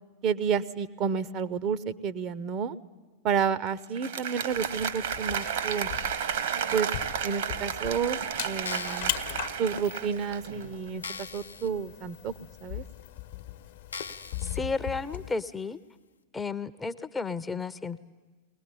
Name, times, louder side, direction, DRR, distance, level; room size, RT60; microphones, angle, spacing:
voice 1, 0.2-2.8 3.2-5.9 6.7-6.9 7.2-8.2 8.4-9.1 9.6-12.3 12.6-12.8, right 7 dB, 35° right, 15 dB, 0.7 m, -30 dB
Applause, 3.8-10.8, right 8 dB, 60° right, 1.2 m, -32 dB
sound 1, 4.5-15.3, left 14 dB, 50° left, 1.0 m, -40 dB
sound 2, 8.5-9.2 9.9-10.0 10.5-10.6 11.0-11.7 12.1-12.2 13.0-13.1 13.9-14.6 15.1-15.2, left 5 dB, 75° left, 0.7 m, -40 dB
voice 2, 14.4-15.8 16.3-18.0, left 4 dB, 15° left, 13 dB, 0.6 m, -33 dB
21.5 x 18.5 x 10.0 m, 1.3 s
figure-of-eight pair, 90°, 0 cm